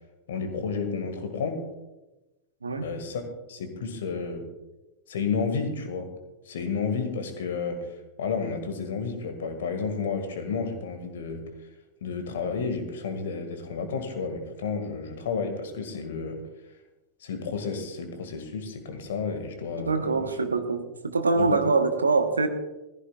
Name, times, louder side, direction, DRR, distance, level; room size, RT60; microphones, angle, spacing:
voice 1, 0.3-1.7 2.8-3.2 3.5-4.5 5.1-6.1 6.5-7.9 8.2-11.5 12.0-16.4 17.2-20.2 21.4-21.6, left 5 dB, 60° left, 7 dB, 2.0 m, -31 dB
voice 2, 19.8-22.5, right 4 dB, 75° right, 8 dB, 1.1 m, -24 dB
17.0 x 15.0 x 2.4 m, 1.0 s
figure-of-eight pair, 90°, 0 cm